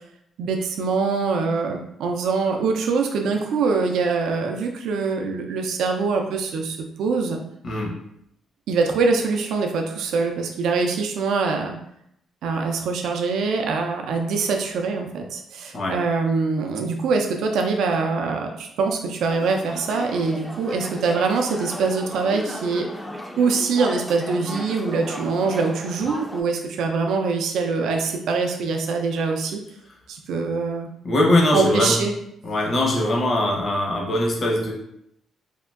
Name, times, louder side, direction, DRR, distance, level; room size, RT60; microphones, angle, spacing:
voice 1, 0.4-7.4 8.7-11.8 12.4-22.9 23.4-29.6 30.1-30.9 31.5-32.1, right 4 dB, 80° right, 3 dB, 0.3 m, -23 dB
voice 2, 7.6-8.0 15.7-16.0 31.0-32.0 32.4-34.7, left 1 dB, 45° left, -1 dB, 0.7 m, -21 dB
sound 1, 19.3-26.4, left 1 dB, 10° left, 0.3 m, -35 dB
3.4 x 2.1 x 2.4 m, 0.75 s
cardioid pair, 90°, 0 cm